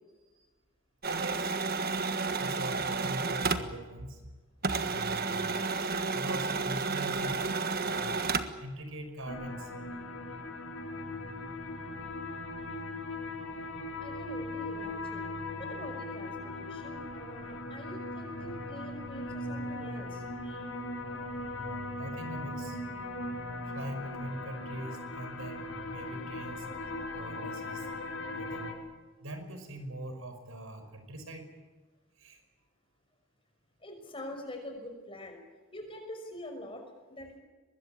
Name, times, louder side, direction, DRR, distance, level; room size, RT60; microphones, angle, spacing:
sound 1, 1.0-4.3 4.6-8.6, right 4 dB, 45° right, 1.5 m, -31 dB
voice 1, 1.1-1.8 2.4-4.2 4.8-5.6 6.1-7.5 7.8-8.3 8.6-9.7 11.9-12.1 12.4-12.7 22.0-22.8 23.7-26.7 27.1-27.9 28.4-28.7 29.2-31.5 32.2-32.4, right 1 dB, 80° right, 7 dB, 5.3 m, -42 dB
sound 2, 9.3-28.7, left 2 dB, 70° left, 5.4 m, -39 dB
voice 2, 14.0-15.3 15.6-20.7 33.8-35.4 35.7-36.8 37.1-37.4, left 1 dB, 25° left, 4 dB, 5.8 m, -45 dB
24.0 x 21.0 x 8.8 m, 1.3 s
head